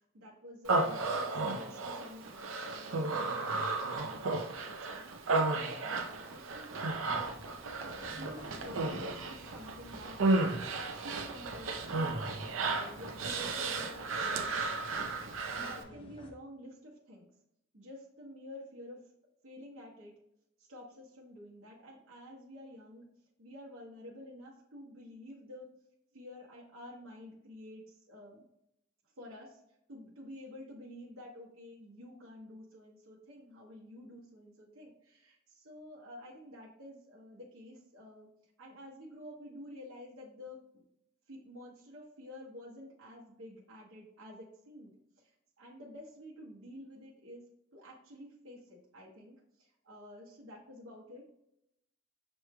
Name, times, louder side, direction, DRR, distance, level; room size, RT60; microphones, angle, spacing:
voice 1, 0.1-5.1 5.8-7.3 7.8-10.2 10.6-12.2 12.7-14.6 15.4-17.3 17.7-19.0 19.4-20.1 20.7-23.0 23.4-25.7 26.1-28.4 29.2-29.6 29.9-38.3 38.6-40.8 41.3-45.3 45.6-47.4 47.7-51.3, left 1 dB, 85° right, -4 dB, 1.0 m, -50 dB
Human voice, 0.7-15.8, right 3 dB, 70° right, 0.6 m, -34 dB
sound 1, 7.0-16.3, equal, 25° left, 0.7 m, -52 dB
6.2 x 3.1 x 2.2 m, 0.79 s
head